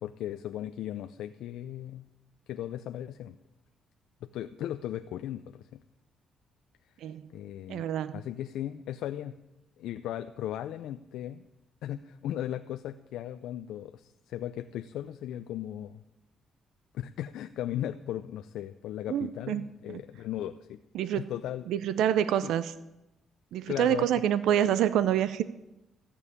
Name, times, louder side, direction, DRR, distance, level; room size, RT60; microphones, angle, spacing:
voice 1, 0.0-2.1 2.5-3.4 4.2-5.8 7.3-7.9 8.1-9.4 9.8-11.4 11.8-16.0 16.9-20.8 21.2-21.7 22.4-22.5 23.7-24.1, left 12 dB, 85° left, 9 dB, 0.5 m, -37 dB
voice 2, 7.7-8.2 19.1-19.6 19.9-20.0 20.9-21.3 21.7-22.7 23.5-25.4, right 10 dB, 85° right, 15 dB, 0.5 m, -27 dB
14.0 x 7.0 x 9.7 m, 0.95 s
cardioid pair, 90°, 0 cm